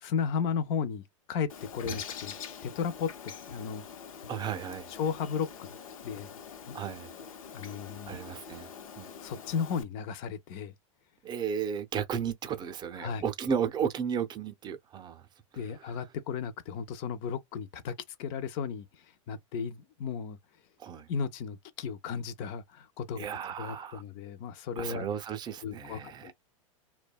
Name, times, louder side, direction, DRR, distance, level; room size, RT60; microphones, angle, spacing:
voice 1, 0.0-2.3 2.6-3.8 4.9-5.7 6.0-6.3 6.7-6.8 7.5-8.2 9.2-10.7 13.0-13.2 15.5-17.9 18.2-20.4 21.1-23.3 23.6-25.1 25.6-26.3, left 6 dB, 50° left, 0.5 m, -34 dB
Bird, 1.5-9.8, left 7 dB, 80° left, 0.8 m, -45 dB
voice 2, 4.3-4.9 6.7-7.1 8.0-8.7 9.0-9.1 11.2-15.3 15.5-16.0 20.8-21.1 23.2-24.0 24.8-26.3, right 7 dB, 25° right, 0.5 m, -34 dB
2.6 x 2.2 x 2.3 m
hypercardioid pair, 115°, 17 cm